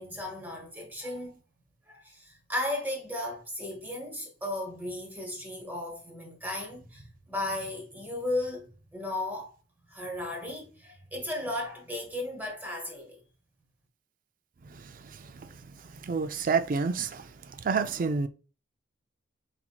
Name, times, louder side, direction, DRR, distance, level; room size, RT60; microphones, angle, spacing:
voice 1, 0.0-1.4 1.9-9.5 9.9-13.2, left 1 dB, 10° right, 1.0 m, -35 dB
voice 2, 14.6-18.3, right 5 dB, 45° right, 0.4 m, -30 dB
4.3 x 4.2 x 2.3 m
head